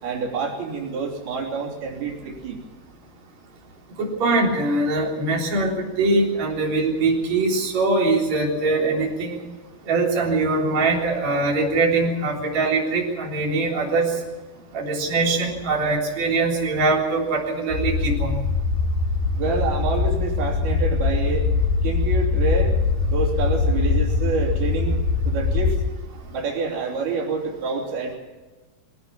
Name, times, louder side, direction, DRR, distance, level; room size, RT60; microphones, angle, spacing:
voice 1, 0.0-2.6 19.4-21.5 21.8-22.8 23.0-25.0 25.3-25.8 26.3-28.2, right 4 dB, 80° right, -1 dB, 5.2 m, -27 dB
voice 2, 4.0-9.4 9.9-14.1 14.7-18.4, right 3 dB, 45° right, -2 dB, 4.9 m, -22 dB
sound 1, 17.7-25.9, left 4 dB, 80° left, 4.0 m, -22 dB
22.5 x 17.5 x 7.4 m, 1.2 s
omnidirectional pair, 4.4 m